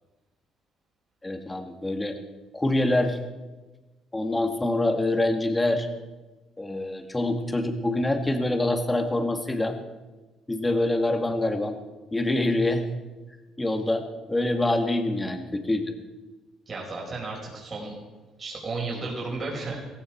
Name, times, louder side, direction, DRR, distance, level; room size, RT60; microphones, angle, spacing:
voice 1, 1.2-2.2 2.5-3.2 4.1-5.9 6.6-9.7 10.5-11.8 12.1-12.8 13.6-15.9, left 1 dB, 15° left, 5 dB, 2.0 m, -25 dB
voice 2, 16.7-17.9 18.4-19.8, right 3 dB, 35° right, -3 dB, 5.2 m, -33 dB
16.0 x 15.5 x 4.7 m, 1.2 s
cardioid pair, 100°, 0 cm